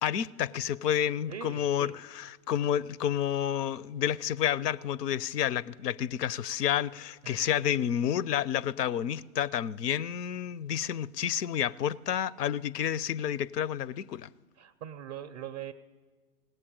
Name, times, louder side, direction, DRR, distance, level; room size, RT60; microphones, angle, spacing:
voice 1, 0.0-14.3, left 10 dB, 85° left, 0.6 m, -30 dB
voice 2, 1.3-2.0 7.2-7.5 14.6-15.7, right 10 dB, 30° right, 0.4 m, -41 dB
17.5 x 8.4 x 8.7 m
hypercardioid pair, 125°, 46 cm